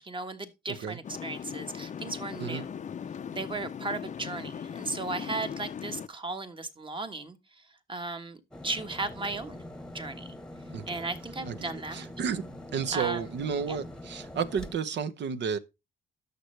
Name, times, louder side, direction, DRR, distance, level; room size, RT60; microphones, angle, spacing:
voice 1, 0.0-2.7 3.3-7.6 7.9-9.6 9.9-10.3 10.9-12.0 12.9-13.3 13.7-13.8, right 3 dB, 25° right, 1.3 m, -36 dB
voice 2, 0.7-1.0 2.4-2.6 10.7-11.0 11.5-15.6, right 7 dB, 65° right, 0.9 m, -32 dB
sound 1, 1.0-6.1, left 7 dB, 35° left, 0.5 m, -39 dB
sound 2, 8.5-14.7, left 1 dB, 5° left, 1.1 m, -44 dB
11.0 x 6.7 x 3.3 m
cardioid pair, 90°, 20 cm